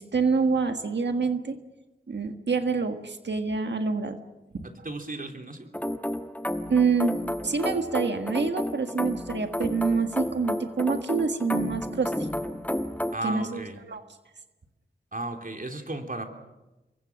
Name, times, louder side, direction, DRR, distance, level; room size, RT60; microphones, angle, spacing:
voice 1, 0.0-1.6 2.1-4.2 4.5-4.6 6.7-7.1 7.4-12.1 13.2-13.6 13.9-14.0, right 4 dB, 80° right, 6 dB, 1.6 m, -26 dB
voice 2, 4.6-5.7 13.1-13.8 15.1-16.3, right 2 dB, 50° right, 4 dB, 3.4 m, -34 dB
sound 1, 5.7-13.1, left 1 dB, 10° left, 1.3 m, -31 dB
28.0 x 23.0 x 6.2 m, 1.0 s
wide cardioid pair, 50°, 18 cm